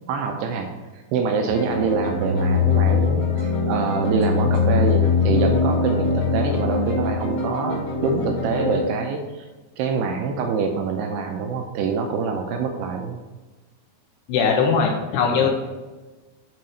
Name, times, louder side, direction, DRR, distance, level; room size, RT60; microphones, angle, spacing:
voice 1, 0.1-9.5 9.8-13.2 15.3-15.5, right 5 dB, 80° right, 3 dB, 2.4 m, -25 dB
sound 1, 1.5-8.8, left 5 dB, 60° left, 2.0 m, -22 dB
voice 2, 14.3-15.5, left 6 dB, 80° left, 1 dB, 2.6 m, -20 dB
7.8 x 4.6 x 4.1 m, 1.2 s
omnidirectional pair, 5.1 m